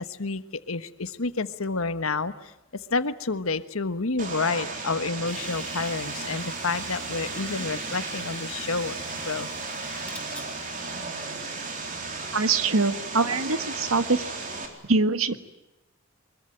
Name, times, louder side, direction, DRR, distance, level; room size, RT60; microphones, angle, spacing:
voice 1, 0.0-8.9 9.2-9.5, left 3 dB, 80° left, 12 dB, 1.3 m, -29 dB
Vehicle, 4.2-14.7, right 3 dB, 40° right, 3.9 m, -35 dB
sound 1, 5.3-12.5, left 2 dB, 5° left, 1.9 m, -47 dB
voice 2, 12.3-14.2 14.8-15.5, right 3 dB, 80° right, 10 dB, 1.7 m, -24 dB
24.0 x 22.0 x 9.0 m, 0.94 s
head